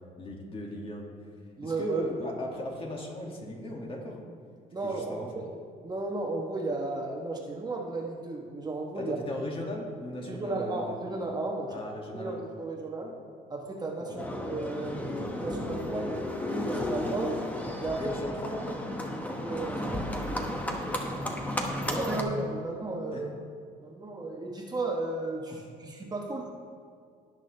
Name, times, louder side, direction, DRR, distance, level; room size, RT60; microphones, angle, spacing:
voice 1, 0.2-1.0 1.6-4.3 4.8-5.4 8.9-10.8 11.7-12.4 14.1-14.2 15.9-16.2 18.0-18.8 20.6-21.3 23.1-23.3, left 1 dB, 30° left, -1 dB, 2.1 m, -37 dB
voice 2, 1.6-2.0 4.7-5.5 5.8-9.2 10.3-11.8 12.1-13.2 13.5-16.1 16.5-17.3 17.8-18.1 19.4-20.3 21.9-23.3 23.8-26.5, right 2 dB, 25° right, 0 dB, 1.1 m, -34 dB
Livestock farm animals working animals, 14.2-22.2, left 1 dB, 10° left, 1.1 m, -33 dB
17.5 x 6.3 x 3.3 m, 2.2 s
cardioid pair, 110°, 17 cm